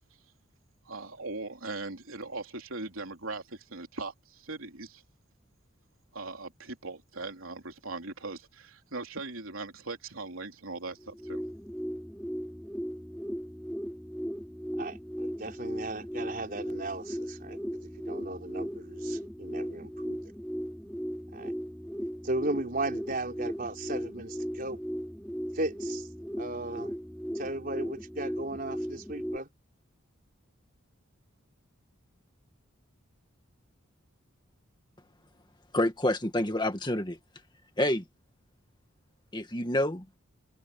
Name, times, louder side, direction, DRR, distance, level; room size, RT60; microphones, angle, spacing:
voice 1, 0.9-5.0 6.1-11.4, right 3 dB, 80° right, 3.4 m, -40 dB
sound 1, 11.0-29.4, equal, 5° left, 3.0 m, -37 dB
voice 2, 14.8-20.2 21.3-21.5 22.2-24.8 25.5-26.1 26.4-26.9 27.3-29.5, right 2 dB, 40° right, 4.6 m, -36 dB
voice 3, 35.7-37.2 37.8-38.0 39.3-40.0, left 1 dB, 20° left, 1.9 m, -28 dB
head